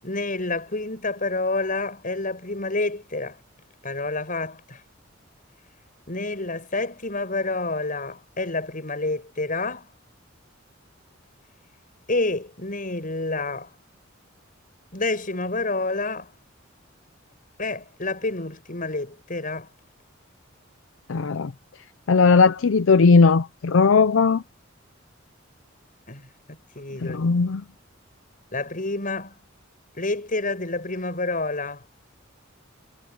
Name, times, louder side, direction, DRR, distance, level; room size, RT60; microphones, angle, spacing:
voice 1, 0.0-3.4 3.8-4.8 6.1-9.9 12.1-13.7 14.9-16.3 17.6-19.7 26.1-27.4 28.5-29.3 30.0-31.9, left 2 dB, 45° left, 7.6 m, -28 dB
voice 2, 21.1-21.5 22.1-24.4 27.0-27.6, left 4 dB, 70° left, 0.5 m, -18 dB
head